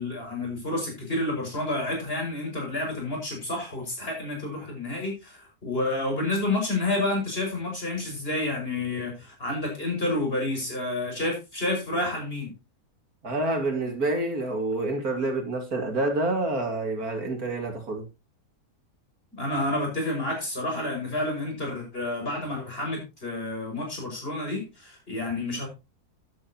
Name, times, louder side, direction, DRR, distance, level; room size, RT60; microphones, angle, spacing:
voice 1, 0.0-12.5 19.3-25.7, left 2 dB, 35° left, 6.3 m, -29 dB
voice 2, 13.2-18.0, right 2 dB, 65° right, 3.0 m, -28 dB
12.5 x 11.0 x 3.0 m
omnidirectional pair, 1.7 m